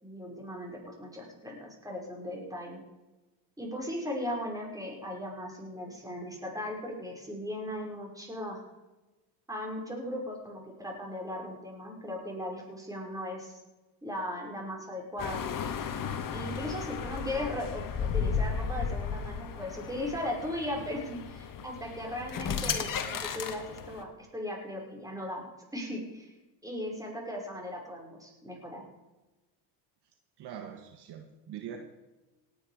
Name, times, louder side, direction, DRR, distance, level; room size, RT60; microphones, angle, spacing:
voice 1, 0.0-2.8 3.6-8.6 9.5-13.5 14.0-15.4 16.3-25.4 25.7-26.3 26.6-28.8, left 1 dB, 5° right, 0 dB, 5.6 m, -37 dB
sound 1, 15.2-24.0, left 6 dB, 45° left, 1.7 m, -34 dB
voice 2, 30.4-31.8, right 9 dB, 55° right, 4 dB, 1.8 m, -43 dB
18.0 x 9.8 x 5.1 m, 1.1 s
supercardioid pair, 90°, 47 cm